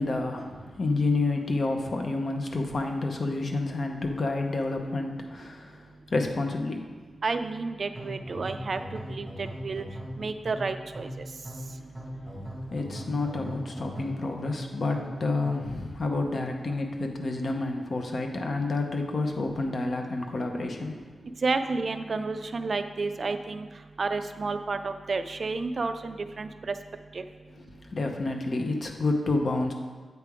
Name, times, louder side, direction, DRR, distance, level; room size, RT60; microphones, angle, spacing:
voice 1, 0.0-5.8 6.1-6.9 12.6-20.9 27.6-29.7, left 2 dB, 50° left, 3 dB, 0.7 m, -29 dB
voice 2, 7.2-9.8 10.2-11.3 21.4-23.7 24.0-26.7 27.1-27.2, right 4 dB, 50° right, 9 dB, 0.3 m, -31 dB
sound 1, 7.9-15.8, equal, 10° right, 1.0 m, -39 dB
8.2 x 3.3 x 4.8 m, 1.5 s
wide cardioid pair, 120°, 0 cm